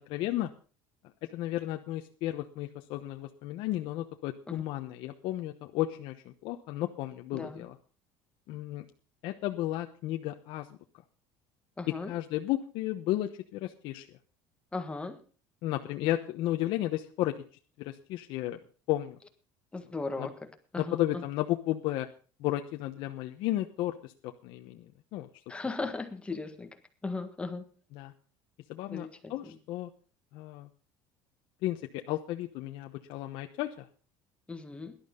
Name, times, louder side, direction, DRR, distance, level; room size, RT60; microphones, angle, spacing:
voice 1, 0.1-0.5 1.3-7.8 8.5-8.8 9.2-10.7 12.1-14.1 15.6-17.4 17.8-18.6 18.9-19.2 20.2-20.3 20.8-22.1 22.4-24.8 25.1-25.3 27.9-28.1 28.7-29.9 30.3-30.7 31.6-33.9, left 15 dB, 65° left, 5 dB, 1.0 m, -33 dB
voice 2, 7.3-7.6 11.8-12.1 14.7-15.2 19.7-21.2 25.5-26.7 27.0-27.7 28.9-29.6 34.5-35.0, left 3 dB, 10° left, 7 dB, 1.6 m, -37 dB
17.5 x 12.0 x 3.8 m, 0.38 s
cardioid pair, 140°, 9 cm